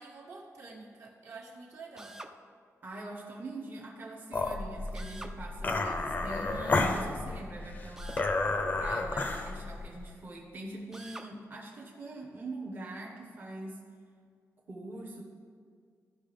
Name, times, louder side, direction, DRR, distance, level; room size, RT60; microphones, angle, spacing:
voice 1, 0.0-2.2, right 3 dB, 60° right, -1 dB, 1.5 m, -48 dB
Drill, 2.0-2.4 4.9-5.4 8.0-8.3 10.9-11.3, right 1 dB, 10° right, 0.4 m, -46 dB
voice 2, 2.8-8.3 8.8-13.8 14.7-15.2, right 2 dB, 35° right, -2 dB, 1.0 m, -43 dB
sound 1, 4.3-10.1, left 2 dB, 30° left, 0.6 m, -31 dB
15.0 x 5.9 x 3.5 m, 2.1 s
wide cardioid pair, 165°, 6 cm